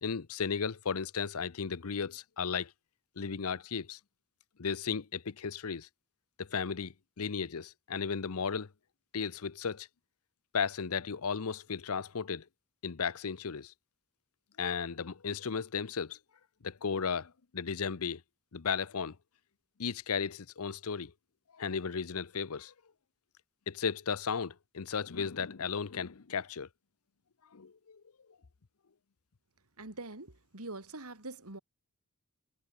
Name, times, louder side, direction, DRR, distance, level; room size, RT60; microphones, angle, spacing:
voice 1, 0.0-2.7 3.2-4.0 4.6-5.9 6.4-8.7 9.1-9.9 10.5-12.5 12.8-13.7 14.6-16.2 16.6-18.2 18.5-19.2 19.8-21.1 21.5-22.7 23.7-26.7 27.5-28.0, left 6 dB, 75° left, 0.7 m, -35 dB
voice 2, 29.8-31.6, right 2 dB, 80° right, 3.1 m, -44 dB
head